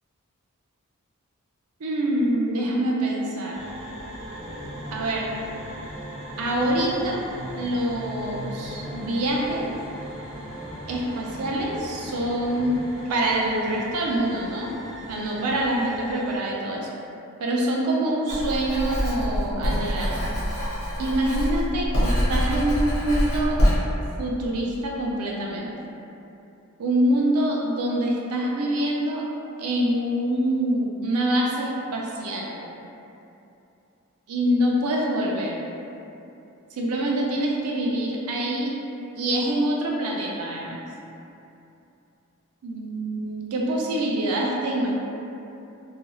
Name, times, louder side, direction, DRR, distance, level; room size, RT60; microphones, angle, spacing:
voice 1, 1.8-3.6 4.9-5.3 6.4-7.2 7.6-9.6 10.9-14.7 15.1-16.9 17.4-20.3 21.0-23.6 24.2-25.9 26.8-29.2 29.6-32.6 34.3-35.5 36.7-38.7 39.2-40.8 42.6-44.9, right 1 dB, 80° right, -2 dB, 0.5 m, -25 dB
sound 1, 3.5-16.4, right 1 dB, 60° right, 0.8 m, -40 dB
sound 2, 4.4-12.7, equal, 20° right, 0.3 m, -40 dB
Writing, 18.3-23.8, equal, 60° left, 1.0 m, -25 dB
2.4 x 2.3 x 3.0 m, 2.8 s
head